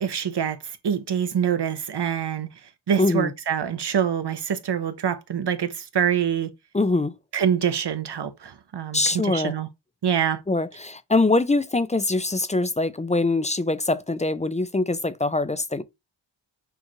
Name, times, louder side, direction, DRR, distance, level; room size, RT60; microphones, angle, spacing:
voice 1, 0.0-2.5 2.9-6.5 7.3-9.7 10.0-10.4, right 8 dB, 55° right, 0.8 m, -25 dB
voice 2, 3.0-3.3 6.7-7.1 8.9-9.6 10.5-15.8, left 2 dB, 15° left, 0.4 m, -23 dB
6.3 x 2.4 x 3.0 m
wide cardioid pair, 75°, 48 cm